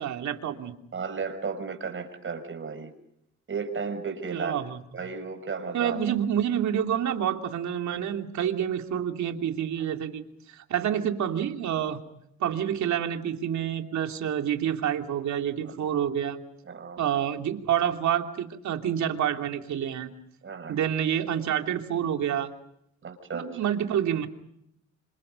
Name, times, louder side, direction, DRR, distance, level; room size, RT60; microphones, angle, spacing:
voice 1, 0.0-0.7 4.3-4.8 5.7-10.2 10.5-12.0 12.4-16.4 17.0-20.1 20.7-22.5 23.3-24.3, right 9 dB, 70° right, 5 dB, 3.0 m, -28 dB
voice 2, 0.9-2.9 3.5-4.6 4.9-6.0 15.6-15.9 16.6-17.0 20.4-20.8 23.0-23.7, right 5 dB, 40° right, 7 dB, 6.4 m, -34 dB
27.5 x 26.5 x 5.4 m, 0.77 s
cardioid pair, 90°, 30 cm